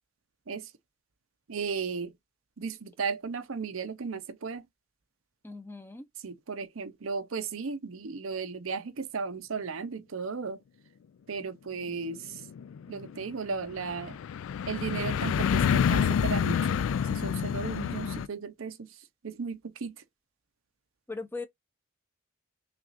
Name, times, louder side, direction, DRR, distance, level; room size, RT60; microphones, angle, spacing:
voice 1, 1.5-2.1 2.6-4.6 6.2-10.6 11.3-12.4 12.9-14.2 14.7-16.8 17.1-18.9 19.2-20.0, right 5 dB, 80° right, 0.7 m, -35 dB
voice 2, 5.4-6.1 21.1-21.5, left 3 dB, 10° left, 0.6 m, -38 dB
sound 1, 11.9-18.3, left 7 dB, 75° left, 0.3 m, -28 dB
5.9 x 2.5 x 2.5 m
head